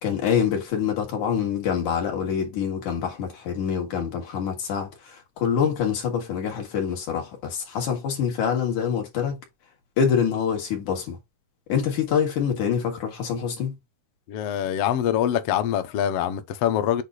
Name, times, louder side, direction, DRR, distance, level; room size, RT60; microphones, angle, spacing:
voice 1, 0.0-9.4 10.0-11.2 11.7-13.7, left 7 dB, 90° left, 3.5 m, -25 dB
voice 2, 14.3-17.0, left 10 dB, 70° left, 1.5 m, -24 dB
8.1 x 2.7 x 4.7 m
omnidirectional pair, 3.4 m